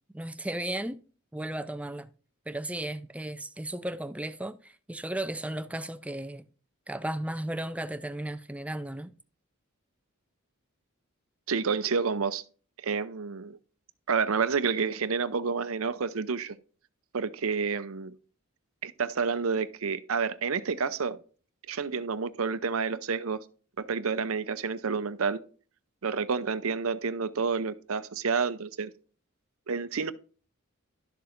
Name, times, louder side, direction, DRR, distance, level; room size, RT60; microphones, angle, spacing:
voice 1, 0.1-1.0 1.3-2.1 2.5-6.4 6.9-9.1, right 1 dB, 5° right, 0.5 m, -35 dB
voice 2, 11.5-12.4 12.8-13.6 14.1-16.6 17.1-18.1 18.8-21.2 21.7-23.4 23.8-25.4 26.0-28.9 29.7-30.1, right 5 dB, 75° right, 0.6 m, -29 dB
12.0 x 7.0 x 2.6 m
head